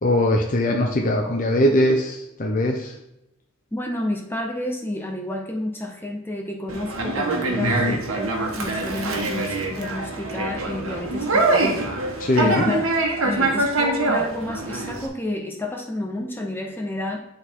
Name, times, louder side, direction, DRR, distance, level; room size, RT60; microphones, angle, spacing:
voice 1, 0.0-2.9 7.6-8.0 12.2-12.7, left 1 dB, 40° left, 1 dB, 0.7 m, -21 dB
voice 2, 3.7-11.8 12.4-12.8 13.2-17.2, left 1 dB, 10° left, 1 dB, 0.8 m, -30 dB
Conversation, 6.7-15.1, right 2 dB, 80° right, 1.2 m, -24 dB
10.5 x 4.0 x 3.7 m, 0.85 s
head